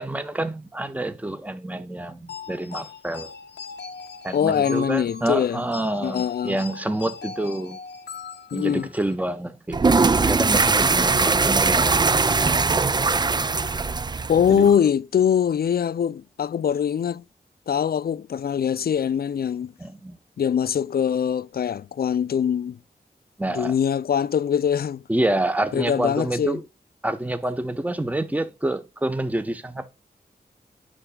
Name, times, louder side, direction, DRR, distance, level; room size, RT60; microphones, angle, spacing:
voice 1, 0.0-3.3 4.2-7.8 8.5-12.6 14.5-14.7 19.8-20.2 23.4-23.7 25.1-26.6 27.0-29.9, right 1 dB, 10° right, 0.9 m, -28 dB
sound 1, 2.3-9.1, left 4 dB, 85° left, 0.8 m, -40 dB
voice 2, 4.3-5.6 6.0-6.6 8.5-8.9 14.3-17.2 17.7-19.7 20.4-22.8 23.5-25.0 25.7-26.6, left 8 dB, 65° left, 0.4 m, -23 dB
sound 2, 9.7-14.8, right 4 dB, 25° right, 0.3 m, -20 dB
9.9 x 5.9 x 2.3 m
wide cardioid pair, 65°, 17 cm